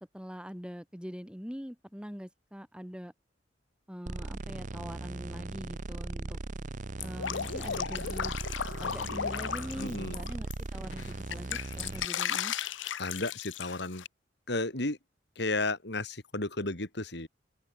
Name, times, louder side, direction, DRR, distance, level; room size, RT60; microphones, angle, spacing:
voice 1, 0.1-3.1 3.9-6.4 7.0-8.4 8.8-12.5, equal, 5° right, 3.1 m, -43 dB
sound 1, 4.1-12.1, right 2 dB, 40° right, 0.7 m, -39 dB
Drip, 7.0-10.5 10.9-14.1, left 8 dB, 80° left, 0.7 m, -35 dB
voice 2, 9.8-10.2 13.0-14.0 14.5-15.0 15.4-17.3, left 2 dB, 60° left, 3.6 m, -33 dB
open air
head